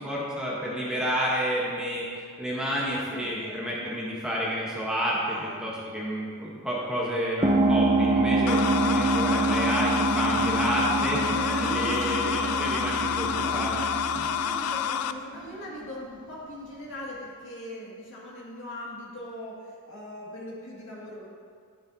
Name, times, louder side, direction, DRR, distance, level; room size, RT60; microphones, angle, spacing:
voice 1, 0.0-13.7, equal, 5° right, -5 dB, 1.1 m, -30 dB
voice 2, 3.0-3.7 5.3-5.6 6.3-6.4 11.1-12.6 13.3-21.3, equal, 60° left, -5 dB, 2.2 m, -41 dB
sound 1, 7.4-15.6, right 2 dB, 20° right, 0.6 m, -26 dB
sound 2, 8.5-15.1, left 8 dB, 90° left, 0.3 m, -29 dB
9.8 x 9.1 x 2.8 m, 2.1 s
head